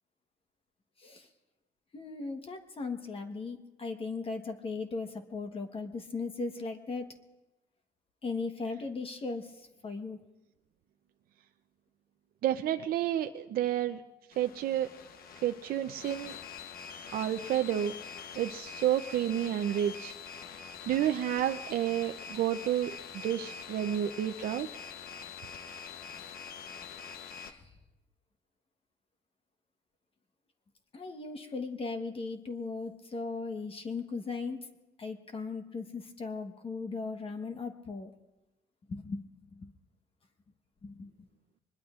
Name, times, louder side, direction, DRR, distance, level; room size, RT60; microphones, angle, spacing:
voice 1, 1.9-7.2 8.2-10.2 26.1-26.3 27.5-27.7 30.9-34.7 35.0-38.1 38.9-39.2 39.5-39.7 40.8-41.1, left 4 dB, 35° left, 6 dB, 1.2 m, -38 dB
voice 2, 12.4-14.0 14.4-14.9 15.4-16.3 17.1-17.9 18.3-20.1 20.9-22.9 23.2-24.7, right 11 dB, 60° right, 6 dB, 0.6 m, -30 dB
sound 1, 14.3-27.5, left 6 dB, 60° left, 1.0 m, -45 dB
24.5 x 21.0 x 2.5 m, 1.0 s
cardioid pair, 110°, 17 cm